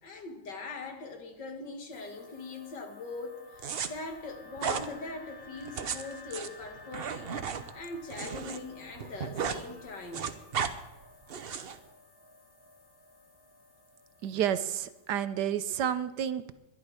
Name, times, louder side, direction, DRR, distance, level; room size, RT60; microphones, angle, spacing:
voice 1, 0.0-7.4 7.7-10.4, left 3 dB, 70° left, 4 dB, 2.6 m, -41 dB
sound 1, 1.9-15.2, left 3 dB, 20° left, 0.6 m, -54 dB
sound 2, 3.6-3.9 4.6-4.9 5.6-8.6 8.9-9.6 9.9-10.7 11.3-11.8, right 7 dB, 50° right, 0.7 m, -34 dB
voice 2, 14.2-16.5, right 9 dB, 70° right, 13 dB, 1.2 m, -30 dB
22.0 x 11.5 x 4.9 m, 1.0 s
omnidirectional pair, 2.0 m